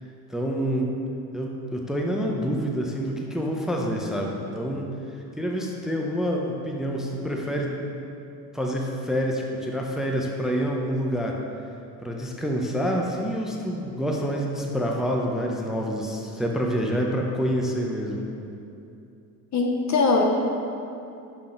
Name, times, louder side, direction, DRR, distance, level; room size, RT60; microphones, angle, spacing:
voice 1, 0.3-0.9 1.3-4.9 5.4-7.7 8.5-11.4 12.0-18.3, equal, ahead, 0 dB, 0.6 m, -27 dB
voice 2, 19.5-20.2, left 3 dB, 40° left, 1 dB, 0.7 m, -21 dB
6.0 x 3.6 x 5.1 m, 2.7 s
supercardioid pair, 90°, 44 cm